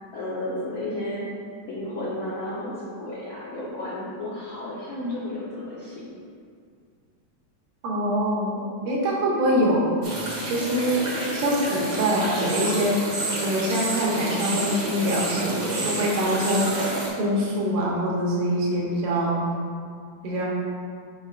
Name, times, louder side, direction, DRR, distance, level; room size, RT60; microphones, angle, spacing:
voice 1, 0.1-1.2 1.6-6.1, left 1 dB, 85° left, -7 dB, 1.1 m, -32 dB
voice 2, 7.8-9.9 10.5-16.7 17.2-19.4 20.2-20.5, equal, 80° right, -4 dB, 2.6 m, -24 dB
sound 1, 10.0-17.1, right 2 dB, 55° right, 1.1 m, -30 dB
7.8 x 5.1 x 2.4 m, 2.2 s
omnidirectional pair, 3.7 m